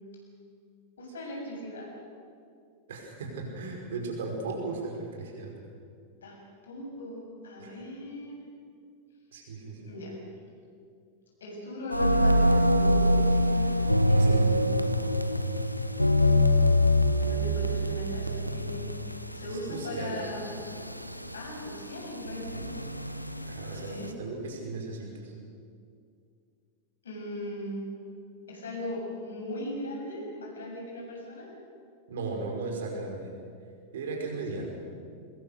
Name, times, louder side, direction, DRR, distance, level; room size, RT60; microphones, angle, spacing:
voice 1, 1.0-1.9 6.2-8.4 9.9-10.2 11.4-13.7 14.1-14.8 17.2-18.9 19.3-20.6 21.3-22.8 23.6-24.1 27.0-27.8 28.5-31.5, left 1 dB, 70° left, -1 dB, 7.6 m, -38 dB
voice 2, 2.9-5.5 7.6-7.8 9.3-9.9 14.2-14.7 19.5-20.2 22.7-22.8 23.4-25.3 32.1-33.3 33.9-34.8, right 3 dB, 60° right, 1 dB, 5.4 m, -36 dB
sound 1, 11.9-24.1, left 1 dB, 90° left, 1.1 m, -25 dB
23.5 x 21.0 x 6.8 m, 2.3 s
figure-of-eight pair, 90°, 0 cm